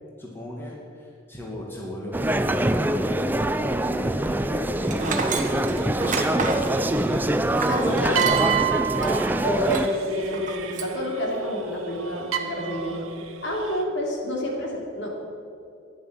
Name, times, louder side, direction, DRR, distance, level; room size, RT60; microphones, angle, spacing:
voice 1, 0.2-5.1 5.6-7.3 7.6-8.4, equal, 10° left, -3 dB, 2.1 m, -38 dB
sound 1, 2.1-9.9, right 1 dB, 10° right, 0.4 m, -24 dB
sound 2, 4.8-13.8, right 8 dB, 90° right, 1.2 m, -31 dB
Tools, 4.9-8.6 9.0-9.1 9.6-10.0 10.3-11.0, right 4 dB, 40° right, 1.4 m, -30 dB
voice 2, 7.7-8.3 9.4-13.1 13.4-15.1, equal, 55° left, -1 dB, 3.0 m, -28 dB
13.0 x 10.5 x 7.8 m, 2.5 s
head